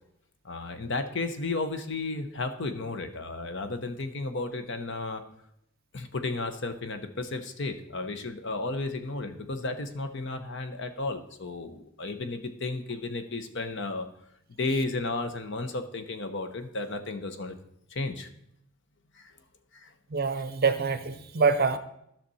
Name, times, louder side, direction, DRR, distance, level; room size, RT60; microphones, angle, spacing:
voice 1, 0.4-5.2 5.9-14.1 14.6-17.5 17.9-18.3 19.1-19.3 19.7-19.9, left 3 dB, 60° left, 9 dB, 0.9 m, -33 dB
voice 2, 20.1-21.8, right 5 dB, 45° right, 11 dB, 0.6 m, -25 dB
13.5 x 5.9 x 4.2 m, 0.77 s
head